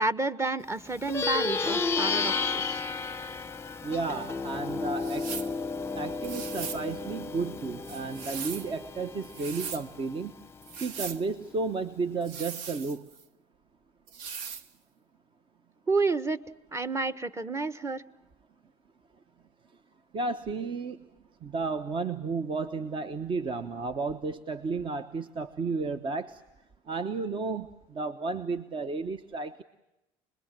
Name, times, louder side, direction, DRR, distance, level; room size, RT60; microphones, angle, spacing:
voice 1, 0.0-2.8 15.9-16.4 16.7-18.0, right 3 dB, 20° right, 13 dB, 1.3 m, -30 dB
Plucked string instrument, 0.9-10.7, left 4 dB, 20° left, 0.8 m, -33 dB
voice 2, 3.8-5.3 5.9-10.3 10.8-13.0 20.1-21.0 21.4-26.4 26.9-29.6, right 4 dB, 40° right, 10 dB, 1.2 m, -33 dB
sound 1, 5.0-5.5 6.2-6.9 7.8-8.7 9.2-9.8 10.6-11.2 12.2-13.2 14.1-14.7, right 6 dB, 80° right, 1.2 m, -39 dB
26.0 x 21.5 x 7.6 m, 0.94 s
supercardioid pair, 90°, 13 cm